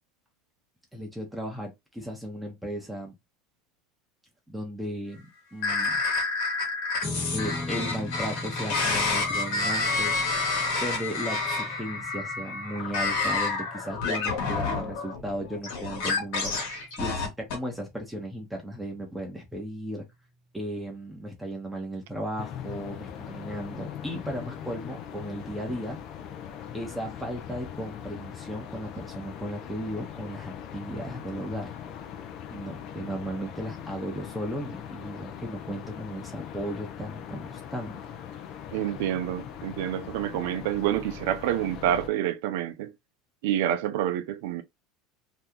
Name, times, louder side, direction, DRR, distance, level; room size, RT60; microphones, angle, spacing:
voice 1, 0.9-3.1 4.5-6.0 7.3-10.1 10.8-20.0 20.5-26.0 26.7-31.8 32.5-38.0, equal, 5° right, 0.9 m, -36 dB
sound 1, 5.6-17.6, left 3 dB, 70° left, 1.3 m, -29 dB
sound 2, 7.0-19.5, left 2 dB, 20° left, 0.9 m, -41 dB
sound 3, 22.4-42.1, left 9 dB, 45° left, 0.6 m, -41 dB
voice 2, 38.7-42.9 43.4-44.6, right 11 dB, 75° right, 0.5 m, -28 dB
2.8 x 2.3 x 3.6 m
supercardioid pair, 145°, 0 cm